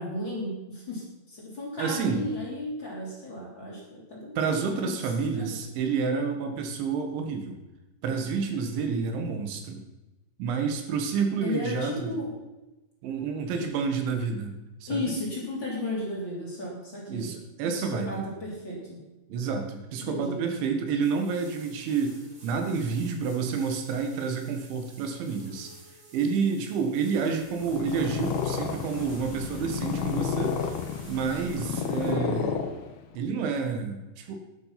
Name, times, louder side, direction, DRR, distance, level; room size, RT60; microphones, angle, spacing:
voice 1, 0.0-4.6 4.8-5.5 11.4-12.3 13.5-13.6 14.9-17.3 17.6-19.0 20.0-20.4, left 1 dB, 25° left, -4 dB, 3.7 m, -34 dB
voice 2, 1.8-2.3 4.4-7.6 8.0-9.8 10.4-12.1 13.0-14.6 14.8-15.1 17.1-18.3 19.3-25.7 26.1-30.6 31.1-32.7 33.2-34.4, right 5 dB, 85° right, 5 dB, 4.0 m, -29 dB
sound 1, 21.0-32.1, right 2 dB, 45° right, 6.6 m, -51 dB
Purr, 27.5-33.2, left 7 dB, 70° left, 2.7 m, -31 dB
12.5 x 10.5 x 5.8 m, 1.0 s
omnidirectional pair, 5.2 m